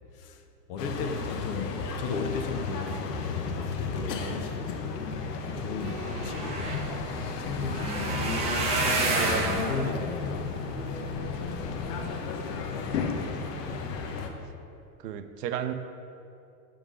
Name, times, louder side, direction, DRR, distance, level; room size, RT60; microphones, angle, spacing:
voice 1, 0.7-4.4 5.2-6.0 6.2-6.9 7.4-8.5 9.1-10.5 11.2-12.3, left 5 dB, 35° left, 6 dB, 0.5 m, -36 dB
sound 1, 0.8-14.3, left 4 dB, 75° left, 1.0 m, -33 dB
voice 2, 4.2-4.5 5.5-5.7 13.2-13.9 15.0-15.7, right 10 dB, 75° right, 10 dB, 0.7 m, -36 dB
sound 2, 5.7-12.1 12.6-13.0 13.5-13.7 13.9-14.0, right 3 dB, 15° right, 0.4 m, -31 dB
Acoustic guitar / Strum, 5.8-9.6 14.4-14.5, right 3 dB, 35° right, 1.1 m, -48 dB
7.0 x 3.7 x 6.1 m, 2.6 s
supercardioid pair, 135°, 48 cm